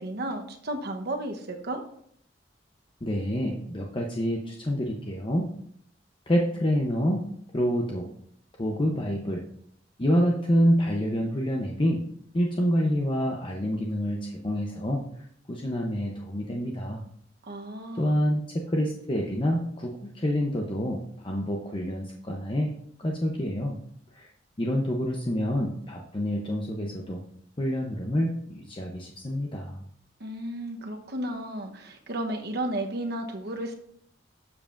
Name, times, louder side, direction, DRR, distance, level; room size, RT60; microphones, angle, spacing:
voice 1, 0.0-1.8 17.4-18.2 30.2-33.7, right 1 dB, 60° right, 4 dB, 1.0 m, -33 dB
voice 2, 3.0-5.5 6.3-7.2 7.5-8.1 8.6-9.5 10.0-12.0 12.3-15.0 15.5-17.0 17.9-22.7 23.0-23.8 24.1-24.3 24.6-27.2 27.6-29.8, equal, 30° left, 0 dB, 0.8 m, -27 dB
12.5 x 7.3 x 2.6 m, 0.68 s
head